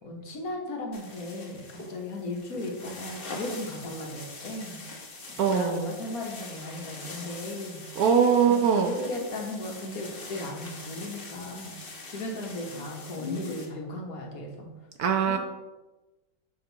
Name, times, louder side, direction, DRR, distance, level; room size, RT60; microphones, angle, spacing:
voice 1, 0.0-4.8 5.3-7.8 8.4-11.8 12.1-14.7 15.2-15.4, left 1 dB, 55° left, 1 dB, 1.6 m, -36 dB
sound 1, 0.9-13.7, left 3 dB, 35° left, 1.2 m, -42 dB
voice 2, 5.4-5.9 8.0-8.9 15.0-15.4, right 7 dB, 65° right, 5 dB, 1.1 m, -22 dB
6.6 x 6.5 x 4.0 m, 1.1 s
omnidirectional pair, 1.9 m